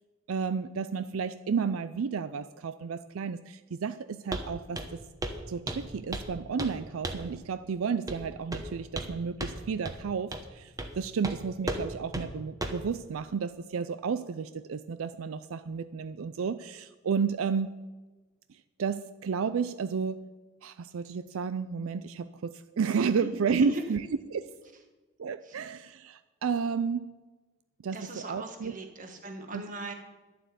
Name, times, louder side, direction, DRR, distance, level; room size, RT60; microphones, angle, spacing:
voice 1, 0.3-5.0 5.5-17.7 18.8-20.2 20.6-24.0 24.3-24.5 25.2-27.2 27.8-28.7 29.5-29.6, right 6 dB, 85° right, 12 dB, 0.4 m, -32 dB
Walk footsteps, 4.3-4.5 4.7-5.0 5.2-5.4 5.7-6.3 6.6-6.8 7.0-7.3 8.1-8.2 8.5-9.1 9.4-9.6 9.8-10.0 10.3-10.5 10.8-10.9 11.2-11.4 11.7-11.8 12.1-12.3 12.6-12.8, right 1 dB, 15° right, 1.0 m, -34 dB
voice 2, 23.1-23.8 25.4-25.6 27.9-29.9, right 1 dB, 40° right, 4 dB, 1.6 m, -38 dB
11.5 x 7.6 x 8.2 m, 1.2 s
head